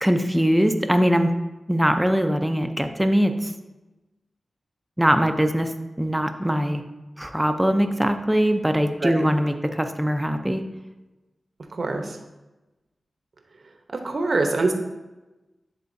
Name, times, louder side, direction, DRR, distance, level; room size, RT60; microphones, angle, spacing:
voice 1, 0.0-1.3 1.7-3.5 5.0-5.7 6.0-6.8 7.2-10.6, equal, 10° right, 7 dB, 0.7 m, -21 dB
voice 2, 11.7-12.2 13.9-14.7, right 3 dB, 65° right, 4 dB, 0.9 m, -24 dB
10.5 x 3.7 x 2.7 m, 1.1 s
cardioid pair, 45°, 0 cm